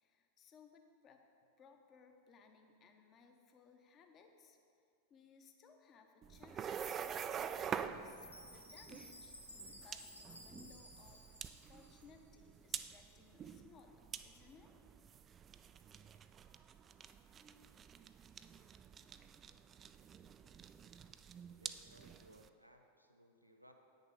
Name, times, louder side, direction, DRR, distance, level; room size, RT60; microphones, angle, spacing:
voice 1, 0.0-1.2 1.6-4.6 5.1-11.4 11.7-14.7, left 5 dB, 30° left, 5 dB, 0.9 m, -63 dB
sound 1, 6.2-22.5, right 7 dB, 25° right, 0.3 m, -47 dB
Chime, 8.0-12.2, equal, 85° left, 1.0 m, -56 dB
voice 2, 21.6-23.7, right 1 dB, 90° right, 3 dB, 0.7 m, -63 dB
9.0 x 6.6 x 5.0 m, 2.4 s
figure-of-eight pair, 90°, 0 cm